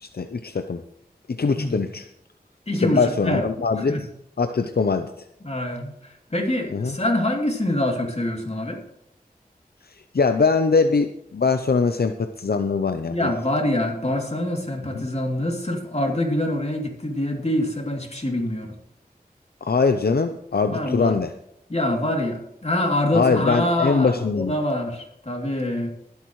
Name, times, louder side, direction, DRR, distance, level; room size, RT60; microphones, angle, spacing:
voice 1, 0.0-0.8 1.3-2.1 2.8-3.9 4.4-5.1 6.7-6.9 9.9-13.3 14.9-15.0 19.6-21.3 23.1-24.6, left 4 dB, 75° left, 8 dB, 0.6 m, -22 dB
voice 2, 2.7-3.4 3.8-4.0 5.4-8.8 13.1-18.8 20.7-21.2 21.7-25.9, left 1 dB, 40° left, 1 dB, 2.9 m, -25 dB
20.5 x 8.3 x 3.1 m, 0.78 s
wide cardioid pair, 45°, 16 cm